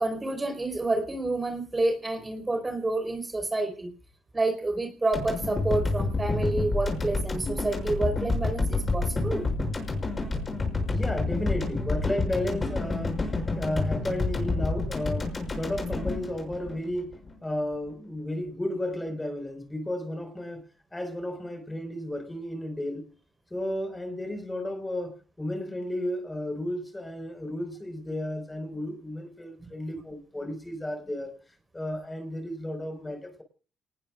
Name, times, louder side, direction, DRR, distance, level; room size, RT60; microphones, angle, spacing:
voice 1, 0.0-3.9 4.3-9.5 29.6-29.7, right 2 dB, 25° right, 4.6 m, -29 dB
sound 1, 5.1-17.3, left 3 dB, 35° left, 6.7 m, -29 dB
voice 2, 10.9-17.1 17.4-20.6 20.9-23.1 23.5-31.3 31.7-33.4, left 1 dB, 15° left, 5.0 m, -33 dB
28.0 x 19.5 x 2.5 m
supercardioid pair, 65°, 0 cm